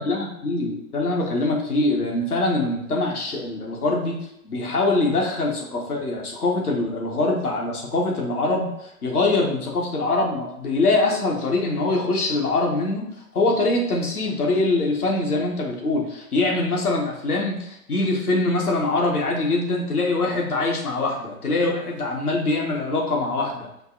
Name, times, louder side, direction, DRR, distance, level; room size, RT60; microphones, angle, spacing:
voice 1, 0.0-4.2 4.4-13.1 13.3-23.7, left 2 dB, 70° left, 0 dB, 1.3 m, -23 dB
5.3 x 2.5 x 3.8 m, 0.79 s
figure-of-eight pair, 115°, 46 cm